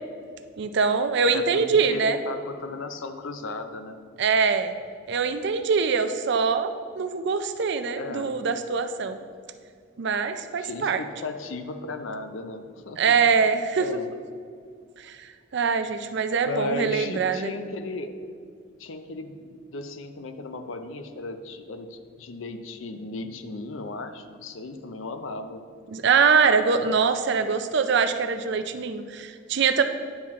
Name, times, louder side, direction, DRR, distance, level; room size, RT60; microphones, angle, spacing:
voice 1, 0.6-2.2 4.2-4.7 5.1-9.2 10.0-11.0 13.0-13.9 15.0-17.5 25.9-29.8, right 5 dB, 65° right, 9 dB, 0.5 m, -23 dB
voice 2, 1.3-4.0 8.0-8.4 10.6-13.1 13.8-14.1 16.5-18.1 18.8-25.6, left 3 dB, 90° left, 8 dB, 0.6 m, -35 dB
9.7 x 5.9 x 3.6 m, 2.2 s
head